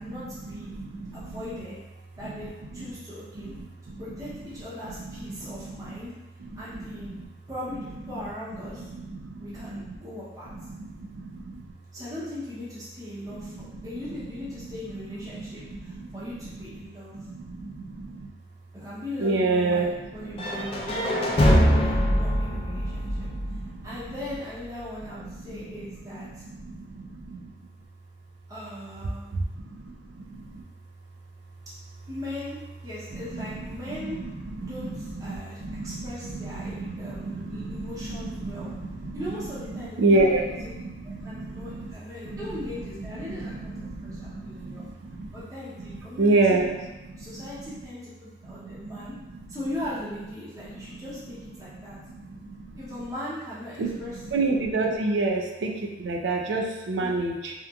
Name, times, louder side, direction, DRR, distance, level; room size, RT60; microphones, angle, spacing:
voice 1, 0.0-0.7 1.1-1.8 2.2-3.5 4.0-6.1 6.5-7.1 7.5-8.9 9.4-10.5 11.9-13.6 13.8-17.1 18.7-23.3 23.8-26.4 28.5-29.5 32.1-34.2 34.6-38.7 39.1-40.7 41.0-43.7 44.0-44.8 45.3-46.6 47.2-49.1 49.5-52.0 52.7-54.2 57.0-57.1, left 1 dB, 20° right, -10 dB, 0.6 m, -39 dB
voice 2, 0.5-1.4 2.2-2.3 3.4-4.0 4.8-6.0 6.5-7.2 8.9-9.9 10.5-11.6 13.3-13.9 14.6-14.7 15.3-16.5 17.1-18.3 19.2-19.9 20.2-21.4 22.1-23.9 25.3-27.5 29.3-30.6 33.1-34.9 35.3-39.2 39.7-41.9 42.3-42.4 43.0-45.4 45.8-47.4 48.5-48.9 50.7-50.9 51.9-52.8 53.8-53.9 54.3-57.5, right 2 dB, 85° right, 2 dB, 0.4 m, -30 dB
sound 1, 20.4-24.3, equal, 30° left, 0.3 m, -23 dB
2.8 x 2.4 x 2.2 m, 1.1 s
head